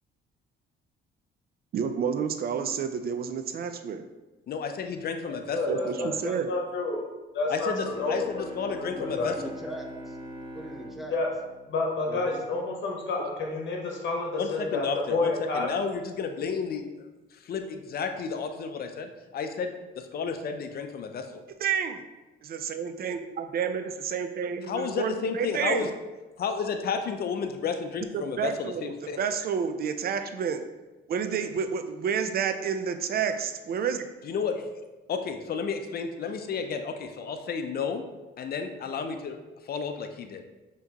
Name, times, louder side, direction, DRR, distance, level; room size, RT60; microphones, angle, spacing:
voice 1, 1.7-4.0 5.7-6.5 21.6-22.0 22.4-25.9 28.1-30.6 31.1-34.1, right 7 dB, 50° right, 8 dB, 0.4 m, -30 dB
voice 2, 4.5-6.4 7.5-9.3 14.4-17.1 17.4-21.3 24.7-25.9 26.4-29.2 34.2-34.7 35.1-38.0 38.4-39.4 39.6-40.4, left 5 dB, 50° left, 6 dB, 0.5 m, -32 dB
voice 3, 5.5-7.0 7.3-8.1 8.7-9.3 11.1-11.3 11.7-15.7, left 3 dB, 65° left, 1 dB, 0.9 m, -29 dB
Bowed string instrument, 7.6-12.8, right 1 dB, 25° right, 1.1 m, -43 dB
voice 4, 8.6-10.2 10.5-11.2 12.1-12.4, right 1 dB, ahead, 1 dB, 0.5 m, -40 dB
5.6 x 3.0 x 2.9 m, 1.1 s
cardioid pair, 90°, 20 cm